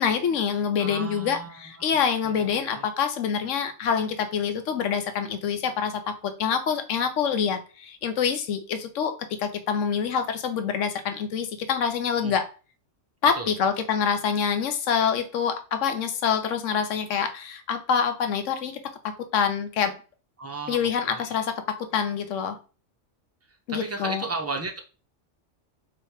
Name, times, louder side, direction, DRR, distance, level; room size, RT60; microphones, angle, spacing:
voice 1, 0.0-12.5 13.2-19.9 20.7-22.6 23.7-24.2, left 7 dB, 85° left, 1.0 m, -26 dB
voice 2, 0.8-1.9 2.2-2.9 12.2-12.3 13.3-13.5 20.4-21.3 23.7-24.8, right 3 dB, 20° right, 0.4 m, -35 dB
3.2 x 2.9 x 4.6 m
omnidirectional pair, 1.3 m